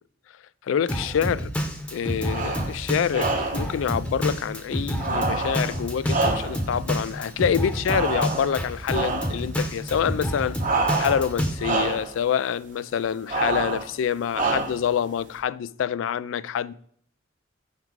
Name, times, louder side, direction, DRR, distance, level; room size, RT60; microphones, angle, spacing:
voice 1, 0.6-1.5 1.9-10.6 11.0-16.7, left 8 dB, 85° left, 0.3 m, -26 dB
Drum kit, 0.9-11.5, equal, 5° left, 0.8 m, -29 dB
sound 1, 2.2-2.7 3.1-3.7 5.0-6.8 7.9-8.6 8.9-9.4 10.6-11.3 11.6-12.1 13.3-13.9 14.3-14.9, right 3 dB, 45° right, 1.1 m, -27 dB
5.8 x 4.7 x 4.5 m
head